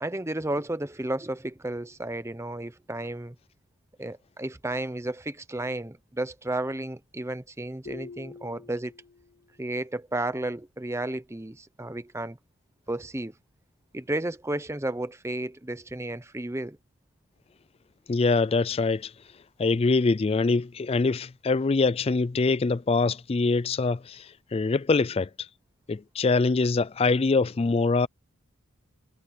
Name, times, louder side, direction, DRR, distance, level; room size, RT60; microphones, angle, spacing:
voice 1, 0.0-3.3 4.0-8.9 9.6-12.4 12.9-13.3 13.9-16.8, right 1 dB, 10° right, 0.7 m, -32 dB
sound 1, 7.8-9.5, left 4 dB, 50° left, 3.6 m, -45 dB
voice 2, 18.1-19.1 19.6-25.3 25.9-28.1, left 3 dB, 25° left, 0.3 m, -24 dB
head